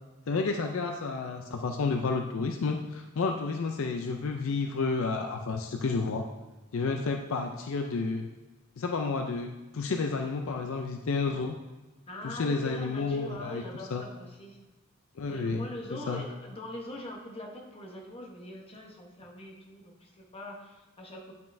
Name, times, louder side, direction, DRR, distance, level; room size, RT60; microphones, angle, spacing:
voice 1, 0.3-6.2 6.7-8.3 8.8-11.5 12.2-14.0 15.2-16.2, left 4 dB, 60° left, 4 dB, 0.4 m, -31 dB
voice 2, 12.1-14.6 15.3-21.3, left 1 dB, 25° left, 0 dB, 1.0 m, -42 dB
8.9 x 5.3 x 2.6 m, 1.1 s
head